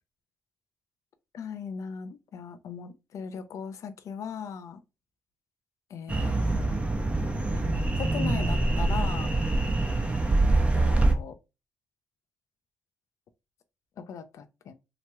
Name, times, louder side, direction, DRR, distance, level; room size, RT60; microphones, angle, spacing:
voice 1, 1.3-4.8 5.9-6.7 7.5-9.3 10.7-11.3 14.0-14.7, left 7 dB, 65° left, 0.5 m, -38 dB
sound 1, 6.1-11.1, right 2 dB, 20° right, 0.9 m, -25 dB
2.9 x 2.9 x 2.2 m
supercardioid pair, 50°, 6 cm